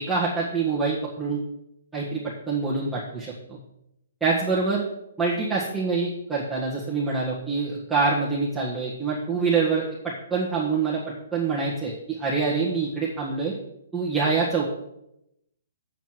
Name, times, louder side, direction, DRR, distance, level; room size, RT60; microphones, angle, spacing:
voice 1, 0.0-1.4 1.9-3.6 4.2-4.8 5.2-11.0 11.3-13.5 13.9-14.7, right 4 dB, 5° right, -8 dB, 1.6 m, -25 dB
8.1 x 7.7 x 4.7 m, 0.83 s
hypercardioid pair, 140°, 0 cm